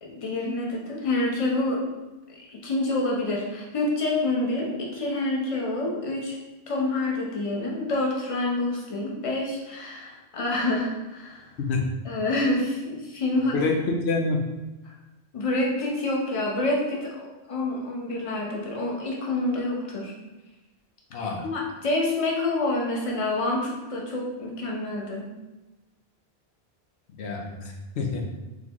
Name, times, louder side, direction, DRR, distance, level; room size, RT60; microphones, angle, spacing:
voice 1, 0.0-1.9 2.3-6.4 6.7-11.5 12.0-13.6 14.8-15.0 15.3-20.1 21.2-25.3, left 2 dB, 35° left, -2 dB, 0.8 m, -27 dB
voice 2, 13.5-14.4 21.1-21.5 27.2-28.3, left 3 dB, 90° left, 1 dB, 0.9 m, -27 dB
3.9 x 3.5 x 3.0 m, 1.1 s
omnidirectional pair, 1.1 m